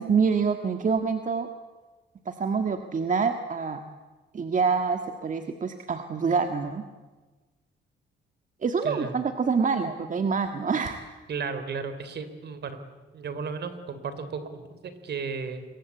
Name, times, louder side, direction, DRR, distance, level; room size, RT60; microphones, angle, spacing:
voice 1, 0.0-1.5 2.3-3.8 4.3-6.8 8.6-11.0, right 5 dB, 40° right, 6 dB, 1.9 m, -26 dB
voice 2, 8.8-9.1 11.3-12.8 13.1-15.6, right 5 dB, 60° right, 11 dB, 3.5 m, -34 dB
26.5 x 23.0 x 8.4 m, 1.3 s
cardioid pair, 90°, 20 cm